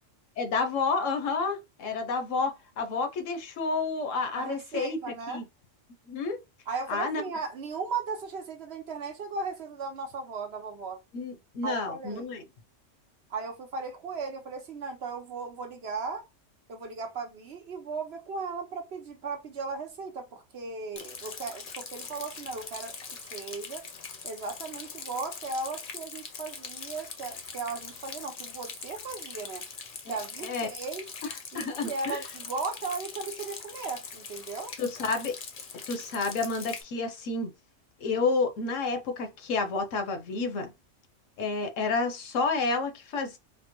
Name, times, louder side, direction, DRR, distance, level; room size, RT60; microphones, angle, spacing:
voice 1, 0.4-5.0 5.3-5.4 6.1-6.4 6.9-7.2 11.1-12.4 30.0-30.7 31.2-32.2 34.8-35.3 35.9-37.5 38.0-40.7 41.4-43.4, left 4 dB, 80° left, 1.1 m, -30 dB
voice 2, 4.4-5.4 6.7-11.0 11.6-12.4 13.3-16.2 16.7-23.0 23.3-23.9 24.2-29.6 30.1-31.1 31.5-34.7, right 4 dB, 60° right, 1.0 m, -36 dB
Rain, 21.0-36.8, left 5 dB, 50° left, 0.8 m, -42 dB
4.3 x 2.1 x 2.9 m
omnidirectional pair, 1.3 m